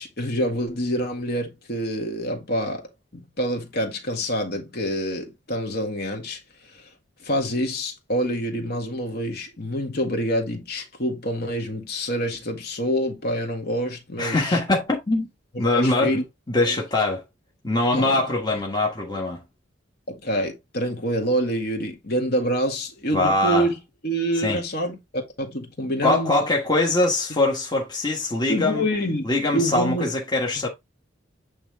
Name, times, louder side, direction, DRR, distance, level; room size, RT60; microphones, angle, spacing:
voice 1, 0.0-2.9 3.1-6.9 7.2-14.6 15.5-16.2 16.7-16.8 17.9-18.2 18.5-18.6 20.1-23.8 24.0-26.4 26.8-26.9 28.5-29.3 29.5-30.1 30.6-30.7, equal, 50° left, 1.8 m, -27 dB
voice 2, 14.2-15.3 15.6-16.2 16.5-17.2 17.6-19.4 23.1-23.7 24.4-24.6 26.0-28.8 29.2-30.7, left 2 dB, 20° left, 1.3 m, -22 dB
8.6 x 3.4 x 3.5 m
head